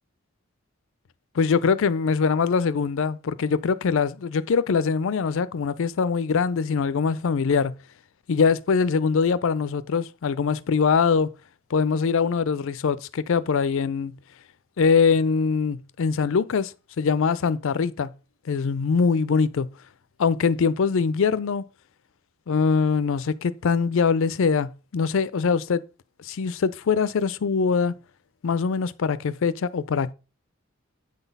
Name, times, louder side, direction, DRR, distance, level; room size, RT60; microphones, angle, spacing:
voice 1, 1.4-7.7 8.3-11.3 11.7-14.1 14.8-18.1 18.5-19.7 20.2-21.7 22.5-25.8 26.2-27.9 28.4-30.1, left 5 dB, 65° left, 0.4 m, -23 dB
8.5 x 4.1 x 5.3 m
head